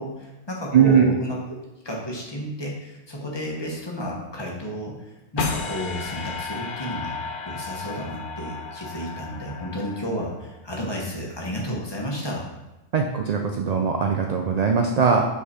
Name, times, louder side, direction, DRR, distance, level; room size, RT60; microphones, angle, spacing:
voice 1, 0.0-1.6 1.8-7.2 7.4-12.4, equal, 25° left, -2 dB, 1.1 m, -32 dB
voice 2, 0.7-1.0 12.9-15.3, right 6 dB, 60° right, 3 dB, 0.4 m, -20 dB
sound 1, 5.4-10.6, left 4 dB, 55° left, 0.7 m, -33 dB
5.5 x 4.1 x 4.2 m, 1.0 s
omnidirectional pair, 1.2 m